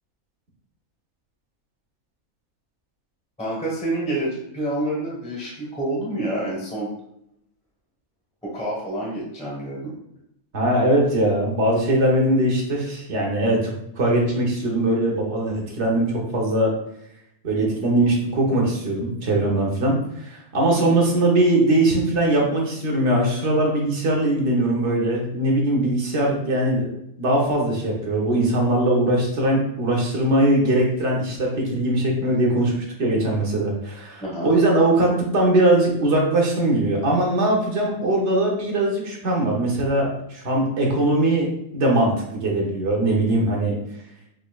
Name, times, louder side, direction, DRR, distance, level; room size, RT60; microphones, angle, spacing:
voice 1, 3.4-6.9 8.4-9.9 34.2-34.5, right 1 dB, 5° left, -5 dB, 0.9 m, -28 dB
voice 2, 10.5-16.7 17.4-26.9 27.2-32.7 33.0-43.8, right 1 dB, 55° right, -1 dB, 1.1 m, -21 dB
5.1 x 2.8 x 2.3 m, 0.77 s
omnidirectional pair, 1.5 m